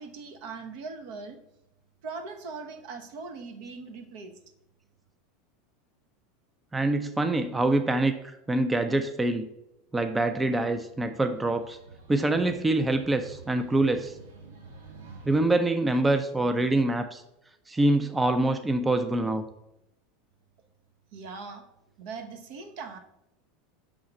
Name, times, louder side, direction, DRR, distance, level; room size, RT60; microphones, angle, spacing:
voice 1, 0.0-1.4 2.0-4.4 21.1-21.6 22.0-23.0, right 4 dB, 65° right, 5 dB, 1.0 m, -40 dB
voice 2, 6.7-9.5 9.9-11.8 12.1-14.2 15.2-17.2 17.7-19.4, right 2 dB, 15° right, 8 dB, 0.5 m, -25 dB
sound 1, 10.5-15.4, right 4 dB, 85° right, 1.1 m, -49 dB
5.6 x 3.7 x 5.8 m, 0.85 s
hypercardioid pair, 100°, 0 cm